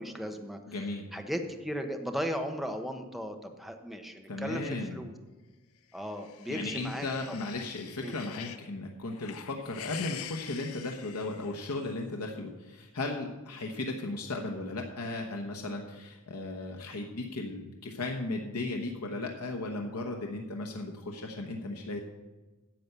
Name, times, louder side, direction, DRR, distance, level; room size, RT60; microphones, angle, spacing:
voice 1, 0.0-0.6 1.1-5.1 5.9-7.1 8.0-8.1, equal, ahead, 4 dB, 0.9 m, -36 dB
voice 2, 0.7-1.1 4.3-5.0 6.5-22.0, left 2 dB, 85° left, 2 dB, 1.1 m, -36 dB
sound 1, 6.0-8.7 9.1-11.9, left 9 dB, 70° left, 0.7 m, -45 dB
10.5 x 7.8 x 6.8 m, 1.2 s
head